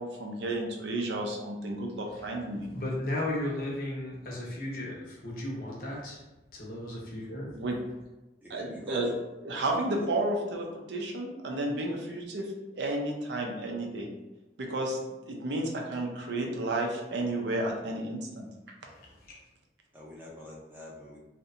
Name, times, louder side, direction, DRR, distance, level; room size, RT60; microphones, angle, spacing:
voice 1, 0.0-2.7 7.5-7.8 8.5-9.1 9.4-14.1 14.6-15.0 15.3-18.5, right 1 dB, 80° right, 1 dB, 0.4 m, -32 dB
voice 2, 2.7-6.2 6.5-7.5 18.9-19.4, left 1 dB, 50° left, -3 dB, 0.7 m, -35 dB
voice 3, 8.4-9.0 9.9-10.1 19.9-21.2, left 1 dB, 10° right, -4 dB, 0.5 m, -46 dB
2.7 x 2.1 x 2.4 m, 1.0 s
head